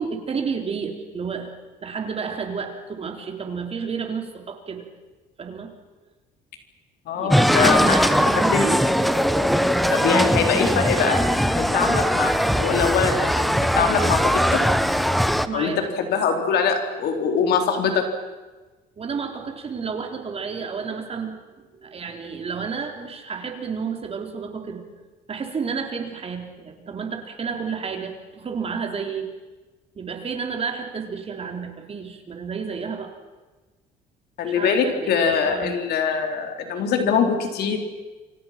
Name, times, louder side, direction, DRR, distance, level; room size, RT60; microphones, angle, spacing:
voice 1, 0.0-1.5 1.8-4.8 5.4-5.7 7.1-8.8 15.5-15.9 19.0-24.9 25.3-29.3 30.0-33.1 34.4-35.8, right 5 dB, 35° right, 3 dB, 4.0 m, -31 dB
voice 2, 7.1-8.2 8.5-8.7 9.9-11.2 11.6-14.6 15.5-18.1 34.4-37.8, left 6 dB, 70° left, 4 dB, 4.1 m, -23 dB
sound 1, 7.3-15.5, equal, ahead, 1.1 m, -20 dB
28.5 x 25.5 x 6.0 m, 1.2 s
cardioid pair, 115°, 17 cm